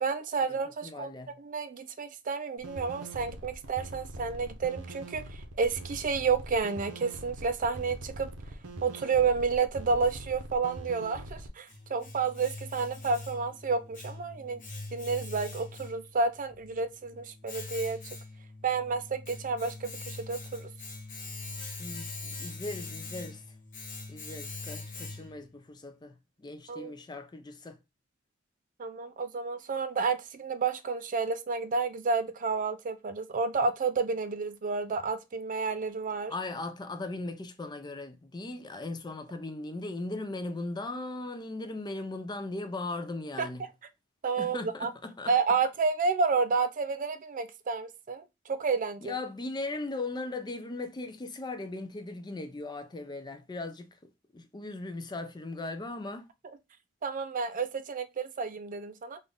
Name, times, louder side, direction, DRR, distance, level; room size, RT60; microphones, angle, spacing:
voice 1, 0.0-1.1 1.4-8.3 8.8-14.6 14.9-18.0 18.6-20.7 26.7-26.9 28.8-36.3 43.4-43.5 44.2-44.9 45.3-49.1 57.0-59.2, right 4 dB, 40° right, 0.4 m, -30 dB
voice 2, 0.8-1.3 21.8-23.4 24.1-26.1 26.4-27.8 36.3-43.7 44.4-45.3 49.0-54.0 54.3-56.3, left 2 dB, 20° left, 0.4 m, -38 dB
sound 1, 2.6-11.5, right 1 dB, 75° right, 0.9 m, -43 dB
Domestic sounds home sounds, 11.1-25.5, left 3 dB, 40° left, 1.1 m, -43 dB
4.0 x 2.5 x 3.4 m
head